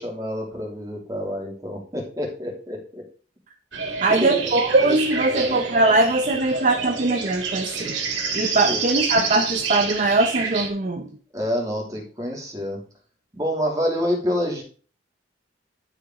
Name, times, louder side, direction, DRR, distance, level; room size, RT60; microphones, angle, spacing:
voice 1, 0.0-3.0 4.0-4.5 5.3-5.6 8.3-9.0 11.3-12.8 13.3-14.6, equal, 20° right, -1 dB, 2.7 m, -28 dB
sound 1, 3.7-10.7, right 5 dB, 80° right, 2.3 m, -28 dB
voice 2, 4.0-8.0 8.3-11.1, right 2 dB, 45° right, 4 dB, 0.7 m, -21 dB
11.5 x 5.0 x 3.7 m, 0.42 s
head